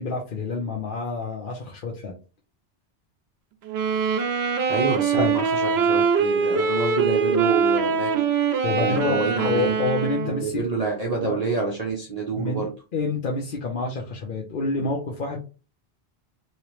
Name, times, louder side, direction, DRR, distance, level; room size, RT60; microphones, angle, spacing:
voice 1, 0.0-2.1 5.1-5.4 8.6-10.6 11.2-11.4 12.3-12.6 12.9-15.4, left 3 dB, 55° left, -2 dB, 0.9 m, -28 dB
sound 1, 3.6-10.5, right 5 dB, 85° right, 0.9 m, -23 dB
voice 2, 4.7-8.3 8.8-9.8 10.2-12.7, right 4 dB, 40° right, -2 dB, 0.8 m, -27 dB
3.1 x 2.9 x 3.0 m, 0.32 s
omnidirectional pair, 1.1 m